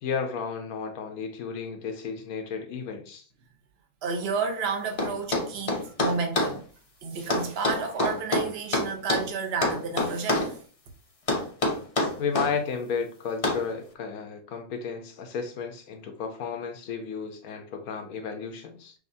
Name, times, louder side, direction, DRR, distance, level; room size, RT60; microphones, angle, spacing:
voice 1, 0.0-3.2 12.2-18.9, left 6 dB, 85° left, 1.2 m, -33 dB
voice 2, 4.0-6.6 7.0-10.5, right 5 dB, 50° right, 1.0 m, -31 dB
sound 1, 5.0-6.6 7.3-9.3 9.6-10.5 11.3-12.5 13.4-13.7, left 2 dB, 35° left, 0.6 m, -26 dB
6.3 x 2.5 x 2.7 m
omnidirectional pair, 1.5 m